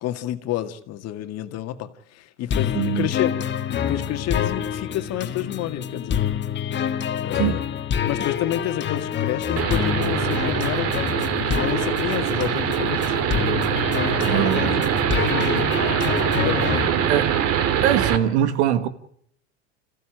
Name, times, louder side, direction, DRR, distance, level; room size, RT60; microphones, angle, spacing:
voice 1, 0.0-3.4 3.7-6.3 7.2-7.6 8.0-10.9 11.3-13.2 14.1-14.5 14.9-15.7 16.4-16.9, left 13 dB, 45° left, 2.0 m, -29 dB
sound 1, 2.5-16.9, left 8 dB, 30° left, 1.9 m, -27 dB
voice 2, 2.7-3.1 7.4-7.6 14.2-15.0 17.1-17.3 17.8-18.9, right 10 dB, 75° right, 2.0 m, -22 dB
sound 2, 9.6-18.2, right 8 dB, 45° right, 2.4 m, -23 dB
27.0 x 15.5 x 9.0 m
hypercardioid pair, 100°, 34 cm